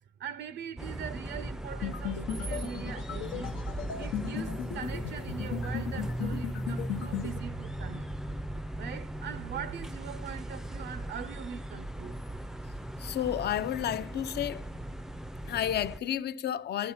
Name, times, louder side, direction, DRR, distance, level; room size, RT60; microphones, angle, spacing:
voice 1, 0.2-3.6 4.0-8.1 8.8-12.2, right 8 dB, 60° right, 0.5 m, -42 dB
sound 1, 0.8-16.0, right 1 dB, 5° right, 0.4 m, -38 dB
sound 2, 1.8-7.4, left 9 dB, 90° left, 0.7 m, -37 dB
voice 2, 13.0-14.6 15.4-16.9, left 10 dB, 55° left, 0.5 m, -31 dB
11.0 x 10.5 x 5.6 m
cardioid pair, 90°, 20 cm